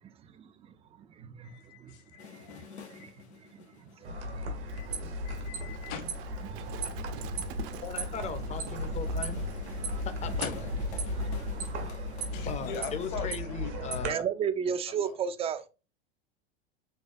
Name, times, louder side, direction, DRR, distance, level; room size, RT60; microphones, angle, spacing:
voice 1, 1.4-2.6 4.8-4.9 5.2-6.1 10.4-10.8 12.3-14.1 14.7-15.1, left 6 dB, 50° left, 1.1 m, -42 dB
sound 1, 2.2-13.2, left 5 dB, 90° left, 1.1 m, -50 dB
sound 2, 4.0-14.1, equal, 85° right, 1.4 m, -35 dB
Livestock farm animals working animals, 4.6-11.9, right 7 dB, 55° right, 0.6 m, -47 dB
voice 2, 7.8-9.4 10.0-10.5 12.4-14.2, left 6 dB, 20° left, 0.6 m, -38 dB
voice 3, 14.0-15.7, right 7 dB, 20° right, 0.4 m, -30 dB
6.4 x 2.2 x 2.5 m
hypercardioid pair, 105°, 32 cm